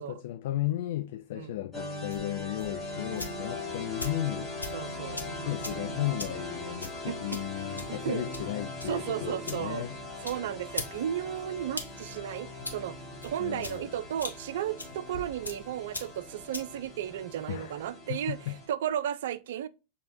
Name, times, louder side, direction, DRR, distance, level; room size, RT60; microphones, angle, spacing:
voice 1, 0.0-4.5 5.4-9.9 13.4-13.9 17.5-17.7 18.1-18.6, left 14 dB, 55° left, 0.3 m, -34 dB
sound 1, 1.7-18.7, left 1 dB, 5° left, 1.6 m, -40 dB
sound 2, 2.0-17.9, left 2 dB, 85° left, 0.8 m, -44 dB
voice 2, 4.7-5.3 7.1-7.4 7.9-8.2 8.9-9.8 10.2-13.0 13.2-19.7, right 10 dB, 55° right, 0.3 m, -34 dB
6.1 x 2.8 x 2.8 m
figure-of-eight pair, 90°, 0 cm